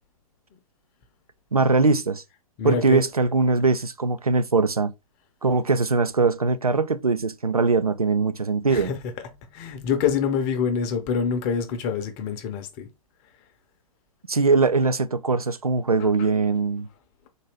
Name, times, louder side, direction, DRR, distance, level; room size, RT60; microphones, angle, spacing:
voice 1, 1.5-2.2 2.6-4.9 5.4-8.9 14.3-16.9, right 4 dB, 85° right, 0.5 m, -21 dB
voice 2, 2.6-3.0 8.7-12.9 16.0-16.1, left 6 dB, 30° left, 0.7 m, -26 dB
4.0 x 2.7 x 3.3 m
figure-of-eight pair, 115°, 19 cm